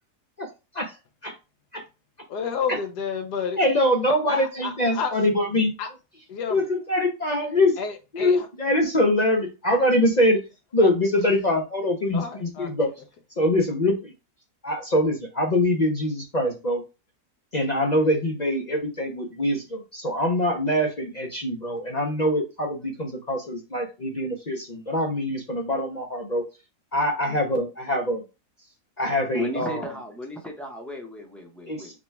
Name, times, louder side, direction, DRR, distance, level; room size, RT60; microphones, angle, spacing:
voice 1, 2.3-3.6 4.3-5.1 5.8-5.9 6.3-6.6 7.8-8.5 10.8-10.9 12.1-12.7, left 6 dB, 90° left, 1.3 m, -30 dB
voice 2, 3.6-5.7 6.5-7.8 8.1-10.4 10.7-12.9 13.4-14.1 14.6-16.8 17.5-26.4 26.9-28.2 29.0-29.8 31.6-31.9, left 1 dB, 50° left, 0.5 m, -24 dB
voice 3, 29.3-32.0, equal, ahead, 0.5 m, -35 dB
4.8 x 2.3 x 4.4 m
omnidirectional pair, 1.7 m